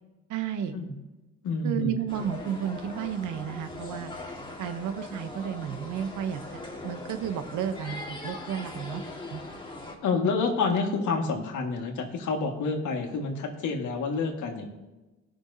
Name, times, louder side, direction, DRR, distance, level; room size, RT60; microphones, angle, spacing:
voice 1, 0.3-0.7 1.6-4.1 4.6-9.0 9.3-9.4, right 9 dB, 80° right, 9 dB, 0.9 m, -32 dB
voice 2, 1.4-1.9 10.0-14.7, left 4 dB, 75° left, 2 dB, 1.8 m, -28 dB
sound 1, 2.1-9.9, left 2 dB, 15° left, 1.8 m, -41 dB
17.0 x 6.2 x 2.7 m, 1.1 s
cardioid pair, 90°, 30 cm